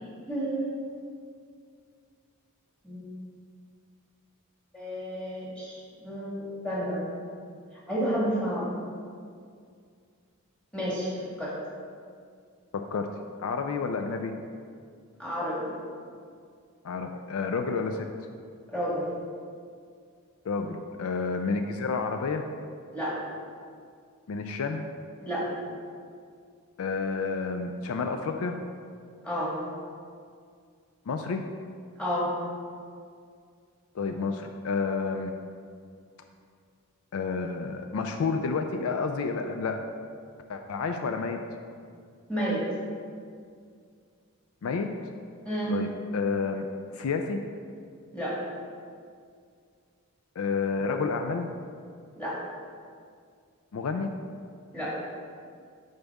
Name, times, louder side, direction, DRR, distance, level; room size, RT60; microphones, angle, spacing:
voice 1, 0.0-0.8 2.8-3.1 4.7-7.0 7.9-8.7 10.7-11.5 15.2-15.7 18.7-19.1 22.9-23.2 25.2-25.5 29.2-29.5 32.0-32.3 42.3-42.6 45.4-45.7 48.1-48.4 52.2-52.4 54.7-54.9, equal, 5° left, -7 dB, 1.6 m, -31 dB
voice 2, 12.7-13.1 13.4-14.3 16.8-18.1 20.5-22.5 24.3-24.9 26.8-28.6 31.1-31.4 33.9-35.3 37.1-39.8 40.5-41.4 44.6-44.9 45.7-47.4 50.4-51.5 53.7-54.1, left 4 dB, 70° left, 5 dB, 0.4 m, -30 dB
8.7 x 4.0 x 3.5 m, 2.2 s
head